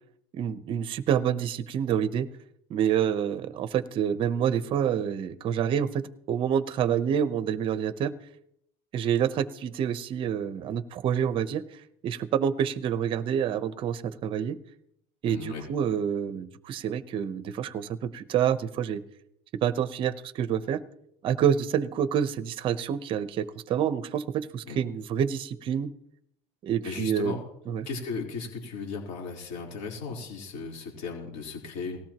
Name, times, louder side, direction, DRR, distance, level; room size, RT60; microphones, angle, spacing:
voice 1, 0.3-2.3 2.7-6.0 6.3-8.1 8.9-11.6 12.0-14.6 15.2-19.0 19.6-20.8 21.2-25.9 26.6-27.4 27.7-27.9, right 8 dB, 35° right, 13 dB, 0.8 m, -27 dB
voice 2, 15.2-15.7 24.7-24.8 26.8-27.4 27.9-32.0, left 4 dB, 50° left, -1 dB, 3.8 m, -36 dB
19.0 x 17.0 x 2.9 m, 0.76 s
cardioid pair, 175°, 16 cm